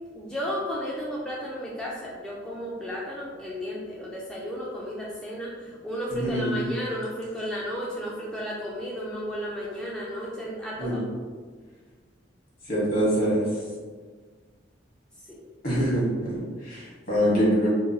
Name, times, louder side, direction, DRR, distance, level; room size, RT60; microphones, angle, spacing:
voice 1, 0.1-11.0 15.3-15.4, equal, 5° left, -6 dB, 0.3 m, -33 dB
voice 2, 6.1-6.7 10.8-11.0 12.6-13.5 15.6-17.7, equal, 55° left, -7 dB, 1.1 m, -25 dB
2.9 x 2.2 x 2.6 m, 1.5 s
head